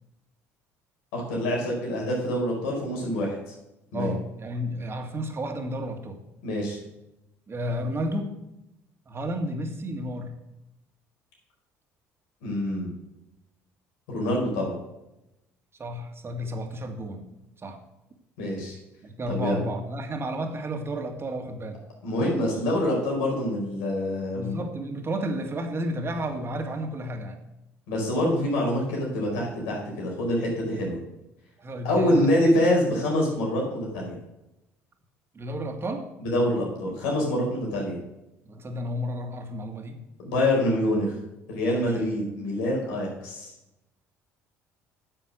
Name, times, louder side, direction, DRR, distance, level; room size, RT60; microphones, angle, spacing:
voice 1, 1.1-3.4 3.9-4.1 6.4-6.8 12.4-12.9 14.1-14.7 18.4-18.8 19.3-19.6 22.0-24.6 27.9-31.0 31.8-34.2 36.2-38.0 40.2-41.1 41.5-43.5, left 1 dB, 75° left, -1 dB, 4.6 m, -26 dB
voice 2, 3.9-6.2 7.5-8.3 9.1-10.3 15.8-17.3 17.6-17.8 19.0-21.8 24.3-27.4 31.6-32.3 35.3-36.1 38.5-40.0 41.7-41.9, equal, 35° right, 5 dB, 2.0 m, -32 dB
10.0 x 7.6 x 6.4 m, 0.91 s
hypercardioid pair, 60°, 8 cm